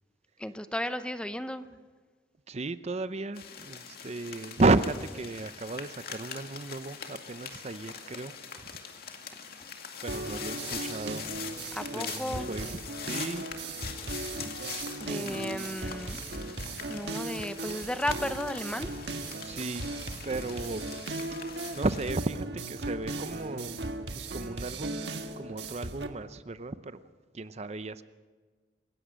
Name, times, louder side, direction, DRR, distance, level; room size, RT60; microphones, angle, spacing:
voice 1, 0.4-1.8 11.7-12.5 15.0-16.2 16.9-18.9, left 1 dB, 5° left, 11 dB, 0.7 m, -34 dB
voice 2, 2.5-8.3 10.0-11.3 11.9-12.8 13.1-13.5 14.4-14.5 15.2-15.7 19.4-19.9 20.2-20.9 21.7-23.8 24.1-27.0 27.3-28.1, right 2 dB, 40° right, 13 dB, 0.7 m, -33 dB
sound 1, 3.4-22.1, left 7 dB, 60° left, 2.2 m, -43 dB
Take Your Time loop, 10.1-26.1, right 2 dB, 70° right, 1.6 m, -37 dB
26.5 x 16.5 x 6.4 m, 1.4 s
head